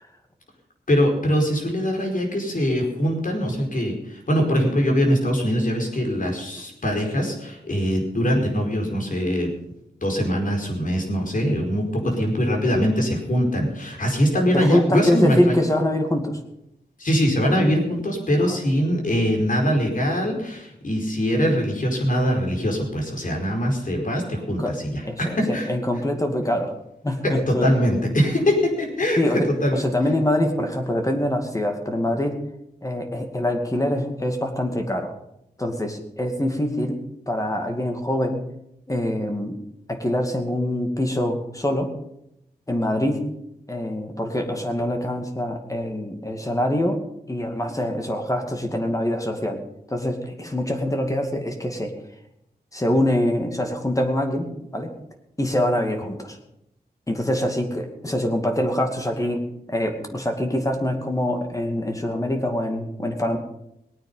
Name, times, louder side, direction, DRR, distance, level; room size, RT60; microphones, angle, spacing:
voice 1, 0.9-9.5 10.0-15.6 17.0-25.7 27.2-29.8, equal, 50° left, 2 dB, 4.8 m, -22 dB
voice 2, 14.5-16.4 18.4-18.6 24.6-24.7 25.0-26.7 27.0-27.7 29.2-29.5 29.7-32.4 32.8-35.1 35.6-37.0 37.3-38.4 38.9-39.6 39.9-41.9 42.7-43.3 43.7-47.0 47.3-49.6 49.9-51.9 52.7-54.5 54.7-54.9 55.4-56.4 57.1-59.4 59.7-63.4, left 1 dB, 20° left, 4 dB, 2.4 m, -24 dB
20.0 x 9.1 x 5.6 m, 0.81 s
wide cardioid pair, 80°, 17 cm